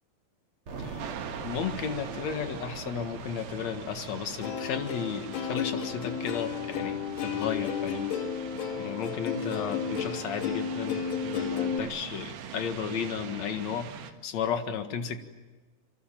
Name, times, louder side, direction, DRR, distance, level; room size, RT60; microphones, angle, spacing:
sound 1, 0.7-11.5, right 4 dB, 40° right, 2.5 m, -45 dB
sound 2, 1.0-14.1, right 8 dB, 85° right, 3.9 m, -43 dB
voice 1, 1.4-8.1 8.8-13.9 14.2-15.3, left 7 dB, 50° left, 7 dB, 2.5 m, -34 dB
Plucked string instrument, 4.4-11.8, left 7 dB, 90° left, 4.1 m, -33 dB
27.5 x 25.5 x 7.5 m, 1.3 s
omnidirectional pair, 4.7 m